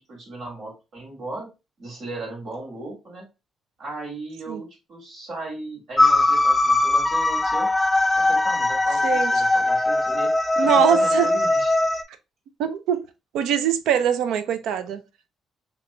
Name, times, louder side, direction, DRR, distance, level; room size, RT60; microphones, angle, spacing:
voice 1, 0.1-1.5 1.8-3.2 3.8-7.7 8.1-10.3 10.6-11.7, right 2 dB, 65° right, 2.2 m, -36 dB
sound 1, 6.0-12.0, left 2 dB, 15° left, 0.4 m, -20 dB
voice 2, 10.6-11.3 12.6-13.1 13.3-15.0, right 8 dB, 85° right, 0.5 m, -22 dB
3.0 x 3.0 x 3.3 m
cardioid pair, 90°, 0 cm